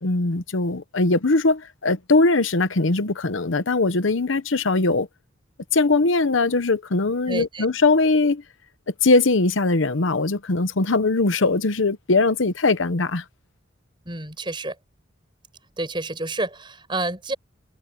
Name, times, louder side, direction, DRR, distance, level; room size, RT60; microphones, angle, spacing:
voice 1, 0.0-5.1 5.7-8.4 9.0-13.2, left 3 dB, 75° left, 1.0 m, -20 dB
voice 2, 7.3-7.7 14.1-14.8 15.8-17.3, right 2 dB, 25° right, 5.8 m, -29 dB
head